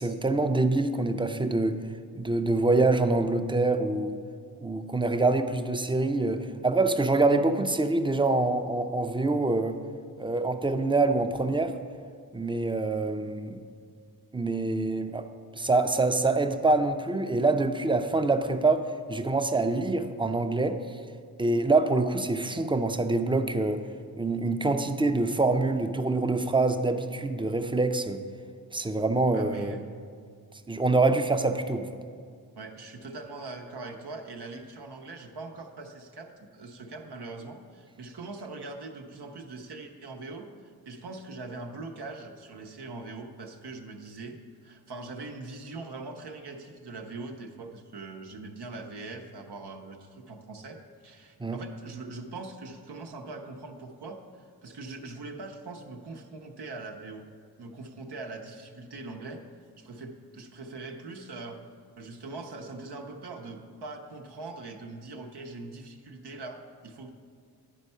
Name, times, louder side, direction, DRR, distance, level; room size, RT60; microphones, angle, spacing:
voice 1, 0.0-1.8 2.1-4.2 4.6-9.8 10.2-11.8 12.3-13.6 14.3-15.3 15.6-20.8 21.4-23.8 24.2-28.2 28.7-29.8 30.7-31.9 51.4-51.6, right 3 dB, 15° right, 8 dB, 0.5 m, -25 dB
voice 2, 29.3-29.9 32.5-40.5 40.9-44.4 44.6-50.8 51.0-57.3 57.6-59.4 59.8-61.6 62.0-67.1, right 3 dB, 80° right, 2 dB, 0.8 m, -42 dB
10.0 x 4.4 x 5.4 m, 2.1 s
cardioid pair, 45°, 39 cm